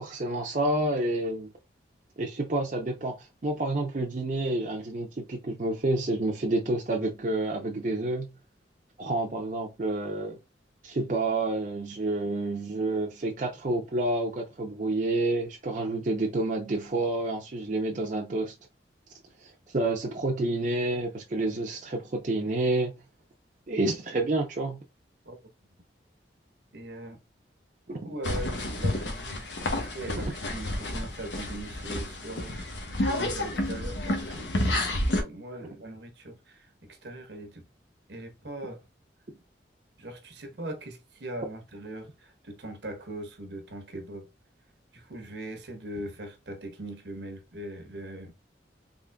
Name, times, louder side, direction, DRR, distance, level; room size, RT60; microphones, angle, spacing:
voice 1, 0.0-1.5 2.2-8.3 9.0-10.4 10.8-18.5 19.4-23.0 23.7-24.8 27.9-28.0 30.2-30.3, right 2 dB, 45° right, 0.6 m, -29 dB
voice 2, 26.7-27.2 28.0-29.5 29.8-37.6 38.1-38.8 40.0-44.3 44.9-48.3, right 1 dB, 70° right, 0.9 m, -40 dB
sound 1, 28.2-35.2, left 1 dB, 85° left, 1.0 m, -30 dB
3.7 x 3.5 x 2.2 m
head